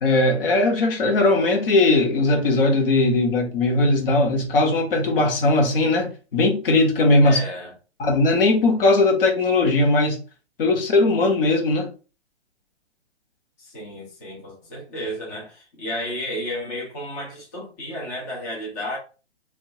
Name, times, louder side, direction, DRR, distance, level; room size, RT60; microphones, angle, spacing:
voice 1, 0.0-7.4 8.0-10.2 10.6-11.9, left 2 dB, 55° left, 0.9 m, -19 dB
voice 2, 7.2-7.7 13.6-19.0, equal, 15° left, 0.4 m, -32 dB
2.8 x 2.2 x 2.7 m
hypercardioid pair, 145°, 35 cm